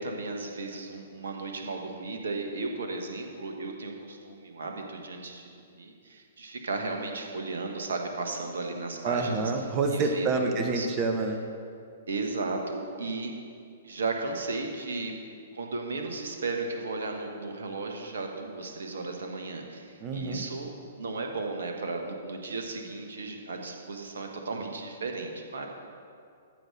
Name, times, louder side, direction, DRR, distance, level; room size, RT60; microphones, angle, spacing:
voice 1, 0.0-5.5 5.7-10.9 12.1-13.3 13.8-15.1 15.5-25.7, right 3 dB, 65° right, 3 dB, 1.3 m, -35 dB
voice 2, 9.0-11.4 20.0-20.4, right 3 dB, 30° right, 5 dB, 1.0 m, -27 dB
13.5 x 4.8 x 6.1 m, 2.4 s
figure-of-eight pair, 115°, 0 cm